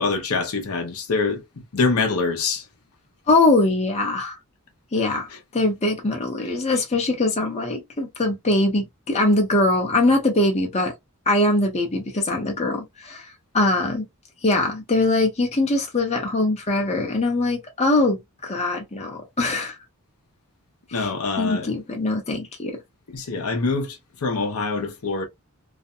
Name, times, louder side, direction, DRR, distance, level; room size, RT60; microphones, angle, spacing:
voice 1, 0.0-1.4 1.7-2.6 5.1-5.2 6.4-6.5 20.9-21.7 23.1-25.3, left 4 dB, 75° left, 0.6 m, -25 dB
voice 2, 3.3-4.4 4.9-5.3 5.5-10.9 11.3-13.2 13.5-14.0 14.4-19.7 20.9-21.1 21.4-22.8, left 2 dB, 30° left, 0.7 m, -22 dB
2.4 x 2.1 x 2.6 m
head